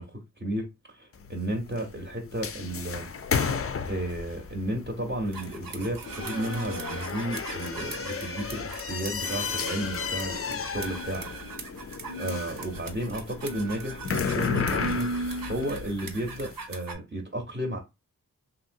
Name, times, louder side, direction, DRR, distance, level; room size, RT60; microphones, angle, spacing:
voice 1, 0.0-3.1 3.9-11.3 11.6-17.8, right 1 dB, 30° right, 0.8 m, -33 dB
sound 1, 1.1-16.5, left 6 dB, 40° left, 0.4 m, -34 dB
sound 2, 5.3-16.9, right 3 dB, 65° right, 0.7 m, -38 dB
2.9 x 2.8 x 2.6 m
wide cardioid pair, 65°, 36 cm